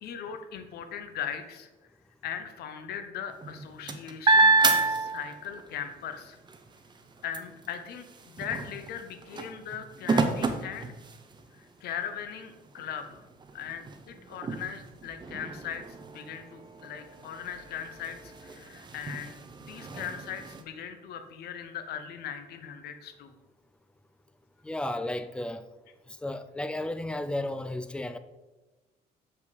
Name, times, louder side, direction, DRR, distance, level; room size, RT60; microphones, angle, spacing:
voice 1, 0.0-1.7 2.2-6.4 7.2-10.9 11.5-13.3 13.5-19.4 19.7-23.3, left 8 dB, 70° left, 0.8 m, -39 dB
sound 1, 3.3-5.7 6.1-11.6 12.2-12.3 12.6-20.6, right 3 dB, 25° right, 0.8 m, -29 dB
voice 2, 24.6-25.6 26.2-28.2, left 1 dB, 5° left, 0.4 m, -33 dB
6.9 x 5.5 x 4.0 m
cardioid pair, 110°, 17 cm